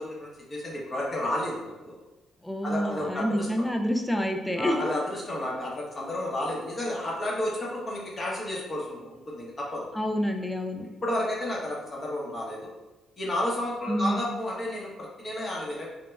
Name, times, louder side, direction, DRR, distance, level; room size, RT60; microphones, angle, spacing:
voice 1, 0.0-1.9 2.6-3.5 4.6-9.9 11.0-12.7 13.2-15.9, left 1 dB, 35° left, -4 dB, 0.8 m, -31 dB
voice 2, 2.4-4.9 9.9-10.8 13.9-14.3, equal, 5° left, 4 dB, 0.3 m, -28 dB
3.0 x 2.1 x 2.3 m, 1.1 s
cardioid pair, 90°, 0 cm